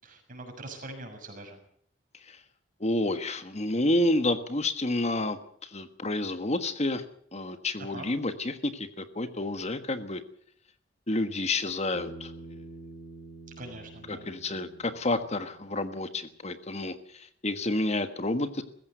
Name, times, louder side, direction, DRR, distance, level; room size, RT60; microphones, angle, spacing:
voice 1, 0.0-1.6 7.8-8.1 13.6-14.3, right 2 dB, 45° right, 4 dB, 6.3 m, -43 dB
voice 2, 2.8-7.0 7.3-10.2 11.1-12.3 14.1-18.6, left 2 dB, 35° left, 10 dB, 1.4 m, -29 dB
Bass guitar, 11.9-16.3, right 2 dB, 60° left, 4.0 m, -48 dB
21.0 x 15.5 x 8.1 m, 0.65 s
head